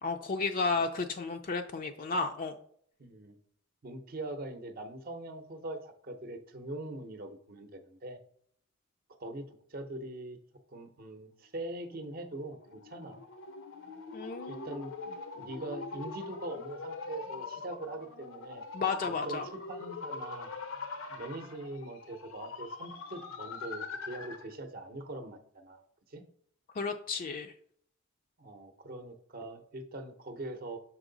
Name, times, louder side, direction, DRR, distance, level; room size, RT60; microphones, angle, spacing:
voice 1, 0.0-2.5 14.1-14.6 18.7-19.5 26.7-27.5, left 4 dB, 45° left, 4 dB, 0.4 m, -33 dB
voice 2, 3.0-3.4 3.8-8.2 9.2-10.4 10.7-13.2 14.5-14.9 15.3-18.6 19.0-20.5 21.1-26.2 28.4-30.8, right 2 dB, 45° right, 7 dB, 0.7 m, -42 dB
sound 1, 11.8-24.5, left 4 dB, 85° left, 0.8 m, -43 dB
6.0 x 4.5 x 3.9 m, 0.63 s
head